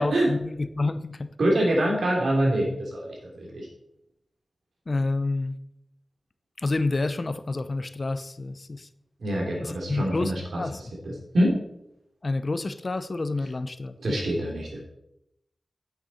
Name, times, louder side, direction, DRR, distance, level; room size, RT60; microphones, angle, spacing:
voice 1, 0.0-1.3 4.9-5.6 6.6-8.9 9.6-10.9 12.2-14.2, left 2 dB, 45° left, 12 dB, 0.7 m, -29 dB
voice 2, 1.4-3.7 9.2-10.6 11.0-11.6 14.0-14.8, right 1 dB, 80° right, -2 dB, 3.3 m, -25 dB
9.1 x 7.9 x 4.3 m, 0.79 s
wide cardioid pair, 65°, 0 cm